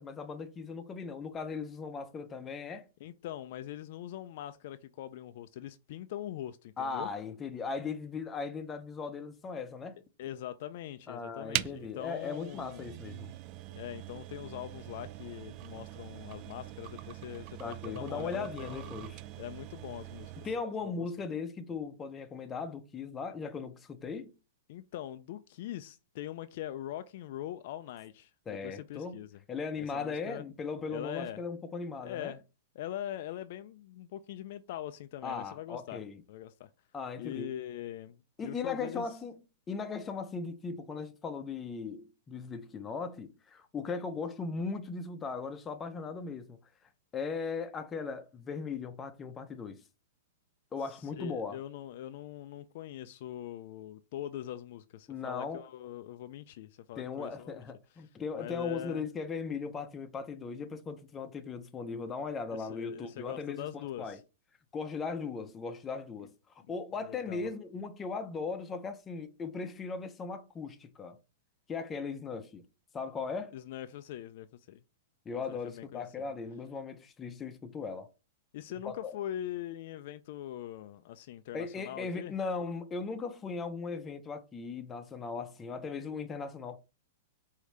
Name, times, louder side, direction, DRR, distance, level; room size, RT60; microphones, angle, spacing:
voice 1, 0.0-2.9 6.8-10.0 11.1-13.3 17.6-19.2 20.4-24.3 28.5-29.2 29.5-32.3 35.2-36.2 36.9-37.5 38.4-39.4 39.7-46.6 47.1-49.8 50.7-51.6 55.1-55.6 57.0-63.7 64.0-64.2 64.7-66.3 66.7-71.2 71.7-72.6 72.9-73.6 75.3-78.1 78.8-79.1 81.5-86.8, left 4 dB, 20° left, 0.6 m, -38 dB
voice 2, 3.0-7.1 10.2-12.9 13.8-18.9 19.4-20.3 20.8-21.1 24.7-29.4 29.8-30.4 30.9-31.4 32.0-32.4 32.8-36.0 36.3-36.7 37.2-39.2 50.8-57.6 58.0-58.1 58.3-59.0 62.5-64.2 67.0-67.5 73.5-74.8 75.3-76.1 78.5-82.3, left 12 dB, 60° left, 0.3 m, -42 dB
sound 1, 11.5-20.7, right 15 dB, 40° right, 0.3 m, -42 dB
4.9 x 2.7 x 3.2 m
hypercardioid pair, 130°, 0 cm